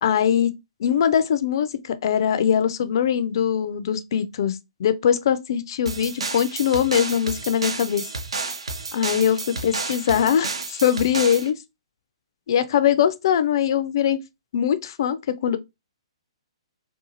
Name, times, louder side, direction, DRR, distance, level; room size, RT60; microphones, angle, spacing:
voice 1, 0.0-0.5 0.8-8.1 8.9-11.6 12.5-14.2 14.5-15.6, left 9 dB, 50° left, 0.3 m, -22 dB
sound 1, 5.9-11.5, right 3 dB, 70° right, 0.5 m, -31 dB
2.6 x 2.3 x 2.6 m
figure-of-eight pair, 120°, 3 cm